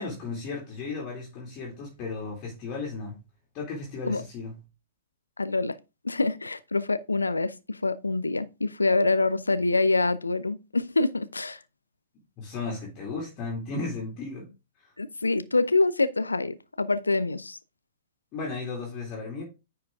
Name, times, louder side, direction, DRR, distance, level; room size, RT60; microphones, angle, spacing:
voice 1, 0.0-3.2 3.5-4.5 12.4-14.5 14.8-14.9 18.3-19.4, left 3 dB, 35° left, 2.7 m, -35 dB
voice 2, 5.4-5.8 6.0-11.6 15.0-17.6, left 3 dB, 80° left, 0.5 m, -25 dB
9.7 x 4.7 x 3.5 m
figure-of-eight pair, 110°, 0 cm